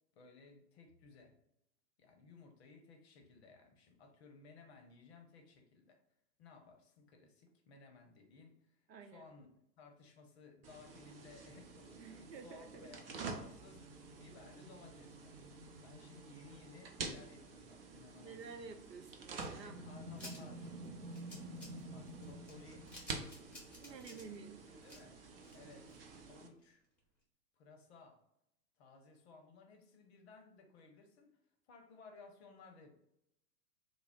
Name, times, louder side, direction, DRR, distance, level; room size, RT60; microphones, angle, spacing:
voice 1, 0.1-1.4 2.0-6.0 6.4-9.5 9.8-13.9 14.2-15.4 15.8-18.4 19.5-20.7 21.9-22.9 23.9-25.2 25.5-26.0 26.2-26.8 27.5-28.2 28.8-31.4 31.7-32.9, left 4 dB, 40° left, 4 dB, 0.7 m, -59 dB
voice 2, 8.9-9.3 12.0-12.9 18.2-20.3 20.8-21.0 23.7-24.6, right 5 dB, 80° right, 7 dB, 0.6 m, -52 dB
sound 1, 10.6-26.5, right 3 dB, 40° right, 0.4 m, -48 dB
sound 2, 20.2-26.3 26.6-26.7 27.0-27.1, left 1 dB, 5° left, 0.8 m, -55 dB
3.3 x 2.0 x 3.5 m, 0.80 s
figure-of-eight pair, 110°, 49 cm